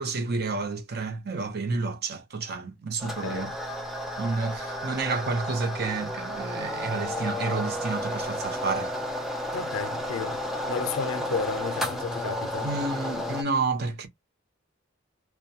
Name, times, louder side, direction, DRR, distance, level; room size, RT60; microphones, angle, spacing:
voice 1, 0.0-3.5 4.2-8.9 12.6-14.1, right 3 dB, 55° right, 0.6 m, -30 dB
voice 2, 3.0-3.6 9.5-12.7, left 5 dB, 90° left, 0.4 m, -33 dB
sound 1, 3.0-13.4, left 1 dB, ahead, 0.4 m, -32 dB
2.2 x 2.1 x 2.7 m
head